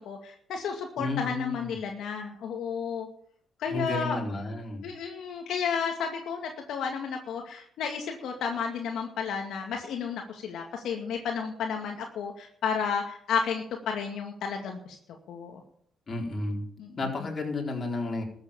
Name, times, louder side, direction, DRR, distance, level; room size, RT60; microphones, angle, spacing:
voice 1, 0.1-3.1 3.6-4.2 4.8-15.0 15.3-15.6 16.8-17.0, left 6 dB, 75° left, 2 dB, 2.1 m, -32 dB
voice 2, 1.0-1.7 3.7-4.9 16.1-16.6 17.0-18.2, left 2 dB, 40° left, 1 dB, 4.4 m, -32 dB
13.5 x 8.1 x 8.9 m, 0.63 s
cardioid pair, 90°, 0 cm